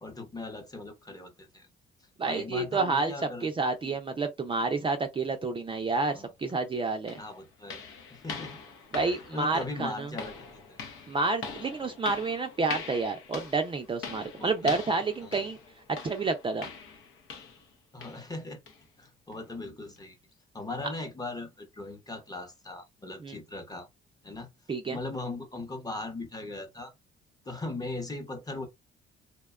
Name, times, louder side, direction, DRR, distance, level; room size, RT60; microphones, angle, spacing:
voice 1, 0.0-1.7 2.2-4.0 6.1-6.3 7.1-7.8 8.1-8.6 9.3-10.8 11.1-11.2 14.4-14.8 15.2-15.3 17.9-18.6 19.0-20.2 20.5-23.9 24.2-24.5 24.9-26.9 27.4-28.7, left 2 dB, 20° left, 0.8 m, -39 dB
voice 2, 2.2-3.1 3.4-7.2 8.9-10.1 11.1-15.6 16.0-16.7 23.2-23.4 24.7-25.0, right 3 dB, 25° right, 0.4 m, -29 dB
sound 1, 6.5-6.6 7.1-17.7 18.0-18.3 18.7-18.8 19.3-19.4 20.0-20.1, left 5 dB, 85° left, 0.7 m, -43 dB
2.8 x 2.2 x 2.3 m
cardioid pair, 90°, 20 cm